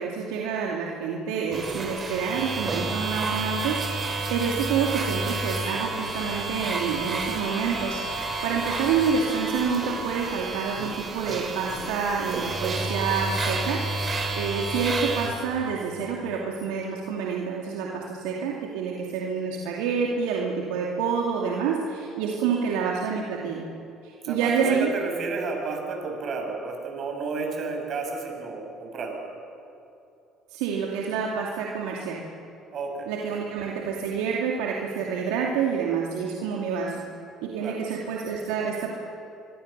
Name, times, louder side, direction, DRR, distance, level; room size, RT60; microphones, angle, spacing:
voice 1, 0.0-13.8 14.3-23.7 24.0-24.9 30.5-32.2 33.1-37.0 37.4-39.0, right 6 dB, 75° right, -2 dB, 2.5 m, -28 dB
sound 1, 1.5-15.3, right 2 dB, 35° right, 5.8 m, -30 dB
voice 2, 24.2-29.2 32.7-33.1 37.6-37.8, right 4 dB, 55° right, 2 dB, 7.4 m, -32 dB
26.0 x 23.0 x 6.8 m, 2.7 s
hypercardioid pair, 60°, 0 cm